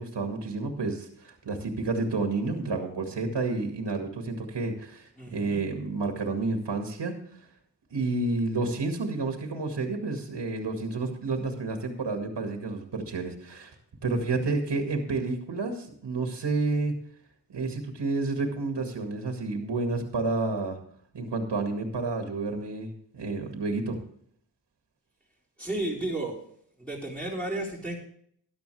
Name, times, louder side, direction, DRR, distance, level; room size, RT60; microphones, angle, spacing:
voice 1, 0.0-7.5 7.9-13.7 14.0-16.9 17.5-20.8 21.1-24.0, right 3 dB, 65° right, 4 dB, 2.1 m, -30 dB
voice 2, 5.2-5.6 25.6-26.4 26.8-28.0, right 1 dB, ahead, -6 dB, 4.4 m, -32 dB
14.0 x 11.0 x 3.4 m, 0.65 s
cardioid pair, 70°, 44 cm